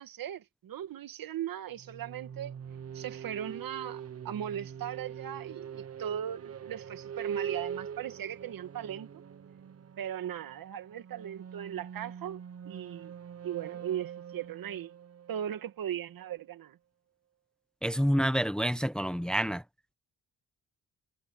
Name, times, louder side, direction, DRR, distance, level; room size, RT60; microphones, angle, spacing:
voice 1, 0.0-2.5 2.9-9.1 10.0-13.1 13.4-14.9 15.3-16.8, right 10 dB, 70° right, 1.9 m, -38 dB
sound 1, 1.7-16.4, right 8 dB, 40° right, 1.1 m, -43 dB
voice 2, 17.8-19.6, equal, ahead, 1.0 m, -28 dB
cardioid pair, 80°, 36 cm